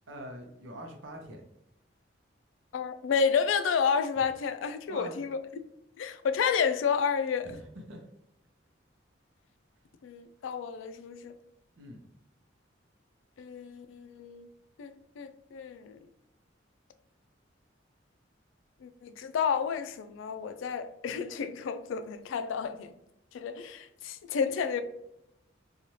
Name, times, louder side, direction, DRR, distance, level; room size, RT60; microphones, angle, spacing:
voice 1, 0.1-1.4 4.9-5.2 7.4-7.6 7.9-8.0 11.8-12.0, right 1 dB, 80° right, 3 dB, 0.6 m, -43 dB
voice 2, 2.7-5.4 6.0-7.5 10.0-11.3 13.4-14.5 14.8-16.0 18.8-22.9 23.3-24.8, left 6 dB, 85° left, 10 dB, 0.3 m, -30 dB
3.0 x 2.3 x 2.7 m, 0.81 s
head